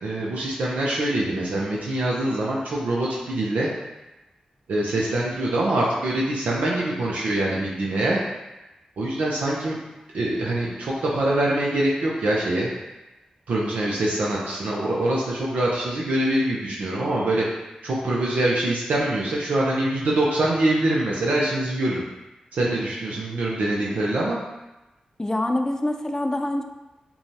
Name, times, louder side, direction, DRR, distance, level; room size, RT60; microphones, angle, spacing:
voice 1, 0.0-3.7 4.7-8.2 9.0-9.8 10.1-12.7 13.5-17.5 17.8-22.0 22.5-24.4, right 1 dB, 80° right, -4 dB, 0.7 m, -24 dB
voice 2, 25.2-26.6, left 1 dB, 20° left, 5 dB, 0.5 m, -25 dB
6.8 x 2.3 x 2.8 m, 1.0 s
cardioid pair, 45°, 2 cm